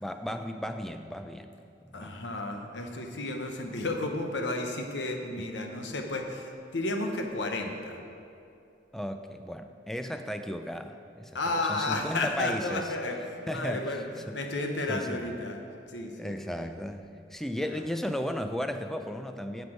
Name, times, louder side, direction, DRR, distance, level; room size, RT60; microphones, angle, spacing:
voice 1, 0.0-1.5 1.8-2.4 5.3-5.5 8.9-11.3 11.7-12.9 13.5-13.9 14.3-14.4 14.9-15.3 16.2-19.7, equal, ahead, 7 dB, 0.4 m, -35 dB
voice 2, 1.9-8.0 11.3-15.6 15.9-16.7 17.6-17.8, left 2 dB, 80° left, 4 dB, 1.0 m, -33 dB
9.8 x 6.8 x 5.0 m, 2.6 s
head